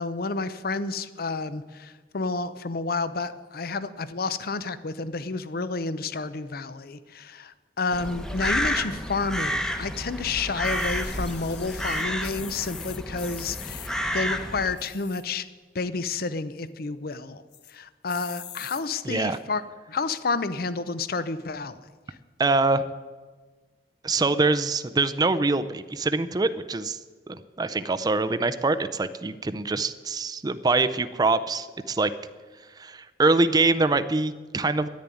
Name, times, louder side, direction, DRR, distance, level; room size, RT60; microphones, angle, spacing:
voice 1, 0.0-15.4 15.7-17.4 17.7-19.6 19.9-21.8, left 4 dB, 55° left, 15 dB, 0.6 m, -30 dB
Crow, 7.9-14.7, equal, 5° left, 0.9 m, -30 dB
sound 1, 10.6-13.9 14.7-15.4 15.8-15.9 16.1-16.2 16.6-17.0 17.5-17.7 18.1-18.8 19.5-19.6, left 10 dB, 80° left, 1.2 m, -42 dB
voice 2, 19.1-19.4 22.4-22.9 24.0-27.0 27.3-32.1 32.8-34.9, right 3 dB, 20° right, 13 dB, 0.4 m, -24 dB
10.5 x 9.1 x 9.8 m, 1.4 s
head